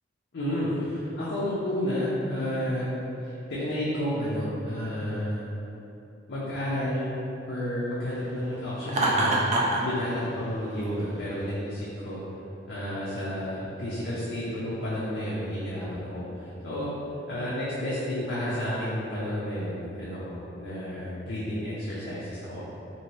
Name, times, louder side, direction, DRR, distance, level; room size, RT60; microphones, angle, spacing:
voice 1, 0.3-2.9 3.2-5.5 6.3-7.1 7.5-9.4 9.8-12.2 12.7-16.9 17.3-22.6, equal, 55° left, -9 dB, 0.5 m, -31 dB
Laughter, 8.9-9.8, right 2 dB, 35° right, 0.3 m, -23 dB
3.0 x 2.7 x 3.0 m, 2.9 s
head